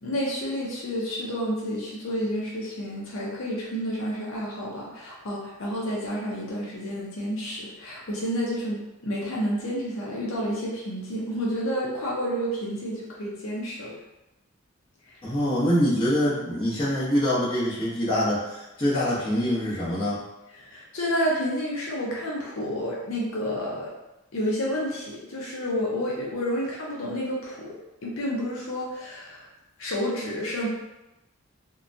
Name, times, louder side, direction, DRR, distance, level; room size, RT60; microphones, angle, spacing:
voice 1, 0.0-14.0 20.5-23.9 24.3-27.7 28.0-29.5 29.8-30.7, equal, 70° left, -4 dB, 0.6 m, -30 dB
voice 2, 15.2-20.2, equal, 25° left, -10 dB, 0.8 m, -24 dB
2.8 x 2.2 x 2.5 m, 0.96 s
head